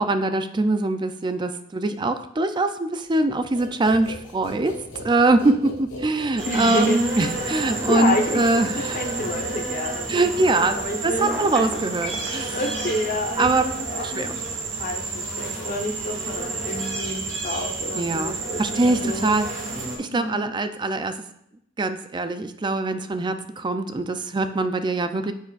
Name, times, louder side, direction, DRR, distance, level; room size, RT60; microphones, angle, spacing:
voice 1, 0.0-4.8 5.0-9.0 10.1-10.8 11.0-12.6 13.4-13.7 14.1-14.3 17.9-19.5 20.0-21.1 21.8-25.3, right 2 dB, 25° right, 9 dB, 0.4 m, -23 dB
sound 1, 3.5-10.0, left 1 dB, 65° left, 2.2 m, -39 dB
voice 2, 6.4-11.3 12.5-14.3 14.7-19.3 20.1-20.5, left 1 dB, 45° left, 2 dB, 1.0 m, -29 dB
sound 2, 6.4-20.0, right 3 dB, 65° right, 2.0 m, -30 dB
Telephone, 11.2-12.3, equal, ahead, 1.8 m, -31 dB
9.8 x 6.4 x 2.5 m, 0.74 s
head